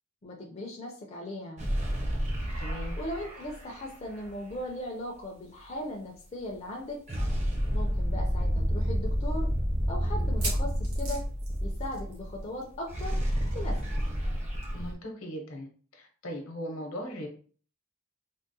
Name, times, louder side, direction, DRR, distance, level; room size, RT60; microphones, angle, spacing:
voice 1, 0.2-1.7 3.0-7.0 7.7-9.5 9.9-11.2 11.6-13.2 13.5-13.8, left 1 dB, 30° left, 0 dB, 0.4 m, -38 dB
sound 1, 1.6-4.5 7.1-12.4 12.7-14.9, equal, 30° right, 0.6 m, -30 dB
voice 2, 2.6-3.0 14.7-15.7 15.9-17.3, equal, 70° left, 2 dB, 0.8 m, -38 dB
sound 2, 10.2-12.3 12.6-12.8 13.1-13.2 14.6-14.7, right 3 dB, 80° right, 1.2 m, -39 dB
3.5 x 2.1 x 2.6 m, 0.42 s
head